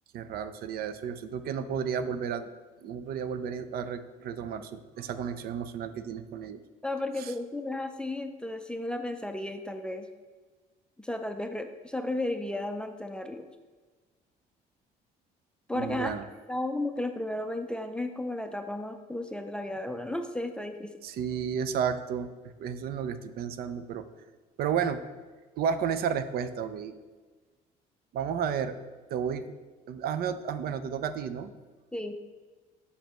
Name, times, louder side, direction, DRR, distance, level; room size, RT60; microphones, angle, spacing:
voice 1, 0.1-2.5 2.8-6.6 7.2-7.3 15.7-16.3 21.0-22.3 22.6-24.0 24.6-25.0 25.6-26.9 28.1-28.8 29.1-29.4 29.9-31.5, right 7 dB, 65° right, 11 dB, 0.5 m, -32 dB
voice 2, 6.8-10.1 11.0-13.5 15.7-16.2 16.5-20.9 31.9-32.2, left 1 dB, 5° left, 6 dB, 0.4 m, -34 dB
6.5 x 5.1 x 3.0 m, 1.3 s
cardioid pair, 110°, 17 cm